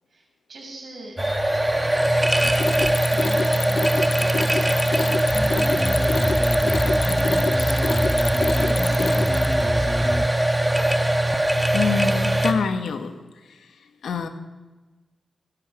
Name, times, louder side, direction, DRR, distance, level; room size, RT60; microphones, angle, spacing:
voice 1, 0.1-1.2 2.4-5.2 5.7-6.3 7.0-8.1 8.5-10.3, right 2 dB, 60° right, -2 dB, 6.8 m, -40 dB
sound 1, 1.2-12.5, right 1 dB, 10° right, 1.3 m, -21 dB
Mechanisms, 2.2-9.7, left 5 dB, 60° left, 0.6 m, -29 dB
sound 2, 5.3-10.3, left 1 dB, 10° left, 0.4 m, -28 dB
voice 2, 11.7-13.2 14.0-14.3, left 6 dB, 90° left, 7 dB, 1.4 m, -25 dB
18.5 x 13.5 x 5.1 m, 1.2 s
cardioid pair, 90°, 0 cm